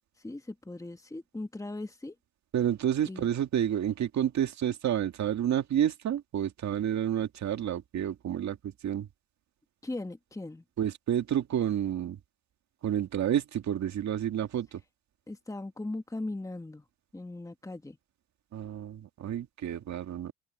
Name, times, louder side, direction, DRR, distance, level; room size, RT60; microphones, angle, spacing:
voice 1, 0.2-2.2 3.0-3.3 9.8-10.6 15.3-16.9 17.1-18.0, left 2 dB, 10° left, 1.8 m, -39 dB
voice 2, 2.5-9.1 10.8-12.2 12.8-14.8 18.5-20.3, right 10 dB, 65° right, 2.2 m, -30 dB
open air
cardioid pair, 90°, 30 cm